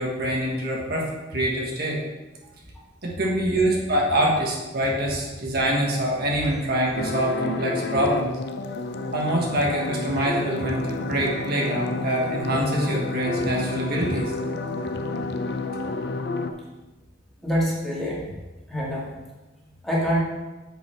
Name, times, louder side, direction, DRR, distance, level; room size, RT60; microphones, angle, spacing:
voice 1, 0.0-2.0 3.0-8.3 9.1-14.3, right 1 dB, 55° right, -2 dB, 1.4 m, -25 dB
sound 1, 6.9-16.5, left 3 dB, 60° left, 0.5 m, -30 dB
voice 2, 17.4-18.3 18.7-19.2 19.8-20.2, equal, ahead, -7 dB, 2.2 m, -25 dB
7.3 x 5.4 x 4.4 m, 1.1 s
head